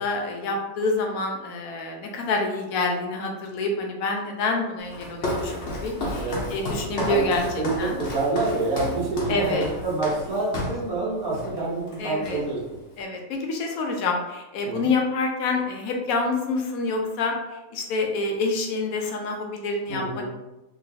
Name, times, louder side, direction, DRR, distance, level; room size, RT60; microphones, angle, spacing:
voice 1, 0.0-7.4 7.8-8.0 9.3-9.7 12.0-12.4 13.0-20.3, left 3 dB, 80° left, 2 dB, 1.1 m, -27 dB
Walk footsteps, 4.9-10.9 11.3-11.6 11.9-12.7, left 1 dB, 55° left, 0.9 m, -32 dB
voice 2, 7.5-12.6 14.6-14.9 19.9-20.3, right 3 dB, 85° right, -6 dB, 1.6 m, -27 dB
3.0 x 2.9 x 2.7 m, 1.0 s
omnidirectional pair, 1.5 m